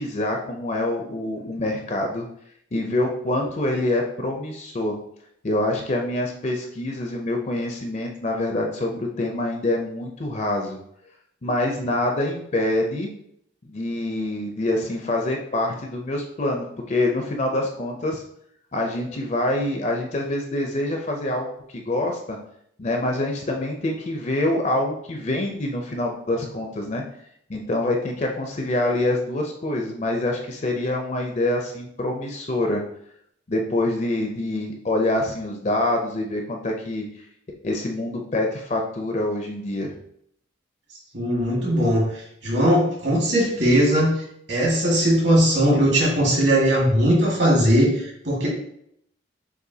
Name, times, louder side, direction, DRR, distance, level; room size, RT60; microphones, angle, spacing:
voice 1, 0.0-2.3 2.7-5.0 5.4-10.8 11.4-13.1 13.7-18.2 18.7-22.4 22.8-27.0 27.5-32.8 33.5-37.1 37.6-40.0, left 1 dB, 35° left, 2 dB, 0.5 m, -25 dB
voice 2, 41.1-44.1 44.5-48.5, equal, 60° right, -4 dB, 1.8 m, -19 dB
6.6 x 2.6 x 2.7 m, 0.70 s
head